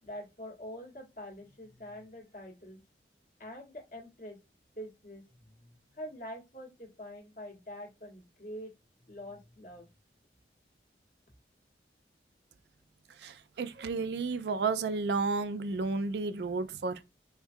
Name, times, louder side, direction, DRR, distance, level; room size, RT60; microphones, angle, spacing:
voice 1, 0.0-2.8 3.4-4.4 4.7-8.7 9.0-9.9, equal, 45° left, 1.4 m, -45 dB
voice 2, 13.2-17.0, right 4 dB, 65° right, 0.4 m, -32 dB
4.5 x 2.3 x 2.6 m
head